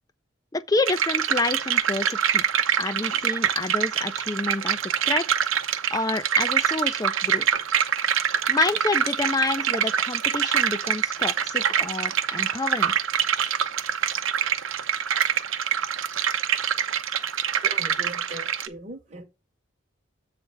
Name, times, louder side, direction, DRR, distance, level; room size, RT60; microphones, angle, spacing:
voice 1, 0.5-2.4 2.8-4.8 5.0-5.3 5.9-7.5 8.5-13.1, left 3 dB, 20° left, 0.4 m, -28 dB
sound 1, 0.9-18.7, right 8 dB, 85° right, 0.7 m, -25 dB
voice 2, 17.6-19.2, right 1 dB, 35° right, 1.0 m, -40 dB
8.1 x 3.3 x 5.4 m
head